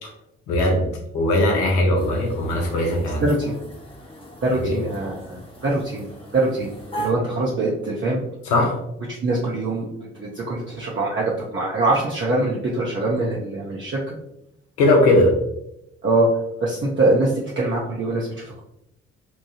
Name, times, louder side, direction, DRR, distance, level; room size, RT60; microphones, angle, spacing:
voice 1, 0.5-0.9 1.1-3.2 4.6-4.8 8.4-8.8 14.8-15.3, left 1 dB, 80° left, 1 dB, 0.7 m, -19 dB
sound 1, 1.9-7.1, right 2 dB, 15° left, 0.9 m, -39 dB
voice 2, 3.2-3.5 4.4-6.7 7.0-8.2 9.2-9.9 10.1-14.1 16.0-16.3 16.6-18.6, right 2 dB, 35° right, -5 dB, 0.7 m, -23 dB
3.0 x 2.2 x 2.8 m, 0.81 s
hypercardioid pair, 40°, 33 cm